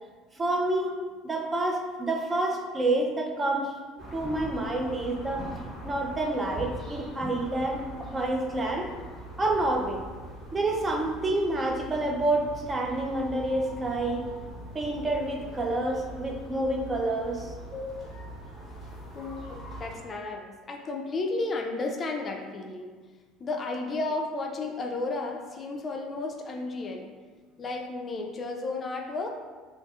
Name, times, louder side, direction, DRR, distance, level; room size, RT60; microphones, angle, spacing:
voice 1, 0.4-0.9 1.2-3.7 4.1-5.4 5.8-8.9 9.4-10.0 10.5-14.2 14.7-17.5, right 2 dB, 25° right, 1 dB, 0.4 m, -28 dB
sound 1, 4.0-19.9, right 1 dB, 40° right, 1.4 m, -42 dB
voice 2, 19.1-22.9 23.4-27.1 27.6-29.4, left 3 dB, 40° left, 2 dB, 0.3 m, -33 dB
2.6 x 2.4 x 2.3 m, 1.4 s
hypercardioid pair, 75°, 0 cm